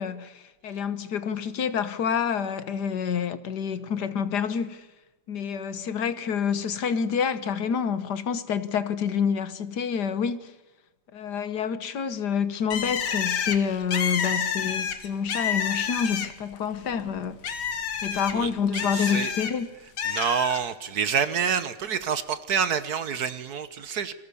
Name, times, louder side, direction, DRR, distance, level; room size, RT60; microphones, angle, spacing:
voice 1, 0.0-4.8 5.3-10.5 11.1-17.4 18.0-19.7, left 7 dB, 55° left, 1.6 m, -28 dB
Bird, 12.7-16.5 16.9-19.5 20.0-20.6, left 7 dB, 75° left, 2.4 m, -29 dB
voice 2, 18.1-18.5 18.9-19.3 20.1-24.1, right 7 dB, 55° right, 1.4 m, -27 dB
29.0 x 22.0 x 7.0 m
omnidirectional pair, 2.3 m